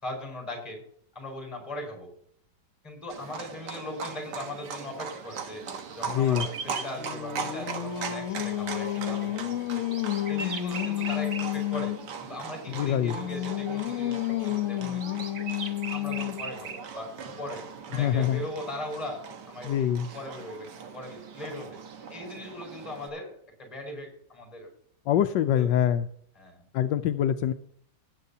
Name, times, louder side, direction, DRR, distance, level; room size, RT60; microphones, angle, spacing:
voice 1, 0.0-0.8 1.1-2.1 2.8-5.6 5.9-10.0 10.3-11.9 12.2-15.2 15.9-17.7 17.9-21.8 22.1-24.7 25.5-25.9 26.3-26.7, left 1 dB, 20° left, 2 dB, 4.7 m, -39 dB
Livestock farm animals working animals, 3.1-23.1, right 6 dB, 70° right, 1.6 m, -40 dB
sound 1, 5.1-6.9 9.1-11.6 12.8-12.9 14.2-16.8, right 5 dB, 45° right, 1.2 m, -39 dB
voice 2, 6.1-6.5 12.7-13.2 17.9-18.4 19.6-20.1 25.1-26.1 26.7-27.5, left 10 dB, 80° left, 9 dB, 1.2 m, -24 dB
Singing, 6.6-12.1 12.7-16.6, left 14 dB, 65° left, 0.8 m, -31 dB
19.0 x 8.4 x 2.8 m, 0.63 s
omnidirectional pair, 1.9 m